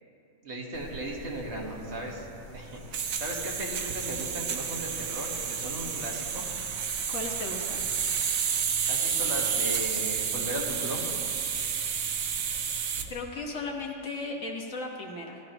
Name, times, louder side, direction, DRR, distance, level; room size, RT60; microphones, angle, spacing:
voice 1, 0.4-2.3 2.5-6.5 8.9-11.0, right 1 dB, 55° right, -2 dB, 1.9 m, -36 dB
sound 1, 0.7-13.1, right 7 dB, 85° right, 1.2 m, -31 dB
voice 2, 7.1-7.8 13.1-15.4, left 2 dB, 70° left, 0 dB, 1.7 m, -36 dB
17.5 x 12.0 x 3.0 m, 2.8 s
omnidirectional pair, 1.4 m